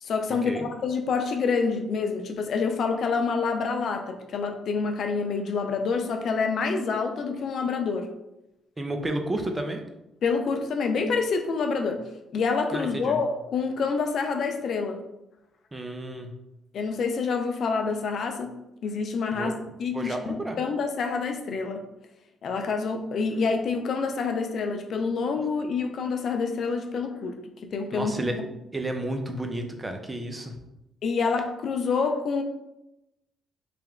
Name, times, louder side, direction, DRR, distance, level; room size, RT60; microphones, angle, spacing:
voice 1, 0.0-8.1 10.2-12.0 12.3-15.0 16.7-18.5 18.8-19.5 19.8-21.8 22.4-27.4 27.6-28.1 31.0-32.4, left 5 dB, 60° left, 5 dB, 0.5 m, -27 dB
voice 2, 8.8-9.8 12.7-13.2 15.7-16.3 19.3-19.5 19.9-20.6 27.9-28.4 28.7-30.5, right 1 dB, 20° right, 4 dB, 0.6 m, -31 dB
3.4 x 2.9 x 3.6 m, 0.89 s
cardioid pair, 90°, 0 cm